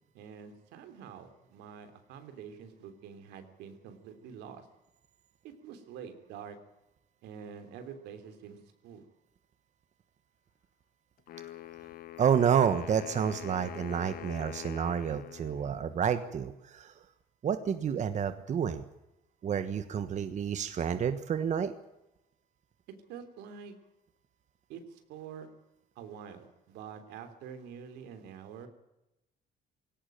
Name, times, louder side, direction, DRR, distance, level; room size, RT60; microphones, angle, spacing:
voice 1, 0.1-4.7 5.4-6.6 7.2-9.0 23.1-23.7 24.7-25.5 25.9-28.7, right 7 dB, 90° right, 8 dB, 3.3 m, -46 dB
Wind instrument woodwind instrument, 11.3-16.3, left 12 dB, 60° left, 1.2 m, -45 dB
voice 2, 12.2-17.0 17.4-18.8 19.4-21.7, right 8 dB, 45° right, 10 dB, 1.3 m, -29 dB
18.5 x 17.5 x 9.0 m, 0.91 s
cardioid pair, 110°, 17 cm